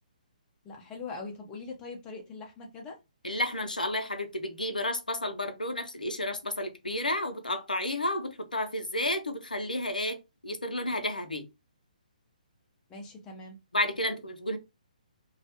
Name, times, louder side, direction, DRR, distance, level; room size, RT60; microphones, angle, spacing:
voice 1, 0.6-3.0 12.9-13.6, left 3 dB, 15° left, 0.6 m, -42 dB
voice 2, 3.2-11.5 13.7-14.6, left 1 dB, 90° left, 0.5 m, -31 dB
2.3 x 2.0 x 2.7 m
figure-of-eight pair, 135°, 4 cm